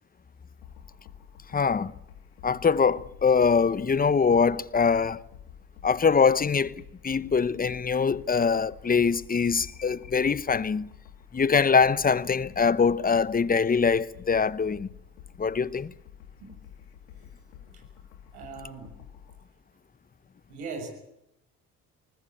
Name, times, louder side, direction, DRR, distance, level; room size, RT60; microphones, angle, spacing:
sound 1, 0.6-19.4, left 9 dB, 85° left, 2.8 m, -50 dB
voice 1, 1.5-1.9 2.4-5.2 5.8-10.9 11.3-14.9 15.4-15.9, left 5 dB, 25° left, 0.9 m, -23 dB
voice 2, 18.3-19.1 20.5-20.9, right 4 dB, 85° right, 7.0 m, -41 dB
20.5 x 20.0 x 8.7 m
supercardioid pair, 60°, 33 cm